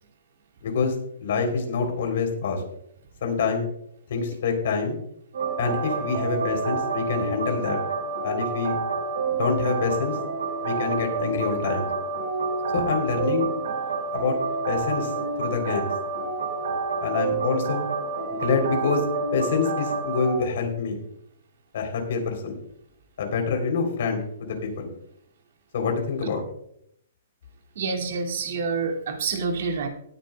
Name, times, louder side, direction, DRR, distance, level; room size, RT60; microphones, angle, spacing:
voice 1, 0.6-0.9 1.2-2.6 3.2-3.7 4.1-5.0 5.6-7.8 8.2-8.8 9.3-10.2 10.6-11.9 12.7-13.5 14.1-14.4 14.7-15.1 15.4-15.9 17.0-17.9 18.4-19.0 19.3-21.0 21.7-22.6 23.2-24.9 25.7-26.4, left 5 dB, 50° left, 3 dB, 3.2 m, -26 dB
sound 1, 5.3-20.4, right 4 dB, 80° right, 4.6 m, -28 dB
voice 2, 27.8-29.9, right 4 dB, 55° right, 4 dB, 2.2 m, -27 dB
19.0 x 9.8 x 2.2 m, 0.70 s
hypercardioid pair, 175°, 0 cm